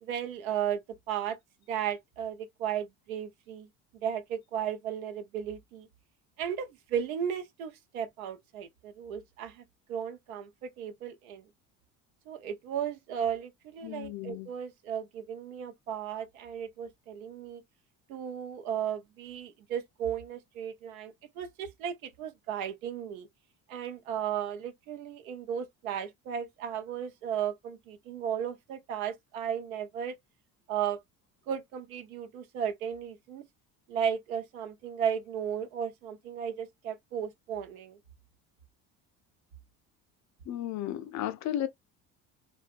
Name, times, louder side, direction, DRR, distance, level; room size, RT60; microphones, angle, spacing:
voice 1, 0.0-0.8 1.1-1.4 1.7-3.7 4.0-5.9 6.4-9.6 9.9-11.4 12.3-17.6 18.1-23.3 23.7-30.2 30.7-31.0 31.5-33.5 33.9-38.0, right 8 dB, 85° right, 0.7 m, -35 dB
voice 2, 13.8-14.5 40.5-41.7, left 12 dB, 45° left, 0.4 m, -34 dB
2.6 x 2.2 x 2.5 m
hypercardioid pair, 70°, 41 cm